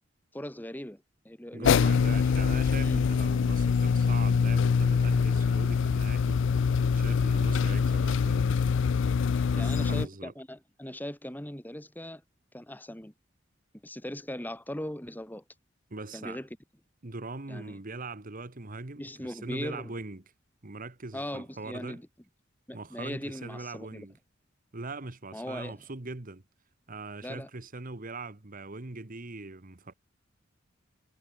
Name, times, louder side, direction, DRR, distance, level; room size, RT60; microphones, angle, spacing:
voice 1, 0.3-1.7 2.1-2.2 2.8-3.0 9.3-12.2 12.5-13.1 13.8-15.4 16.1-16.5 17.5-17.8 19.0-19.9 21.1-22.0 22.7-24.1 25.3-25.8 27.2-27.5, left 1 dB, 10° left, 2.3 m, -39 dB
voice 2, 1.5-6.4 6.9-8.5 9.5-10.3 15.9-16.4 17.0-20.2 20.6-22.0 22.7-24.1 24.7-26.4 26.9-29.9, right 3 dB, 45° right, 1.4 m, -41 dB
sound 1, 1.6-10.0, left 5 dB, 65° left, 0.4 m, -24 dB
head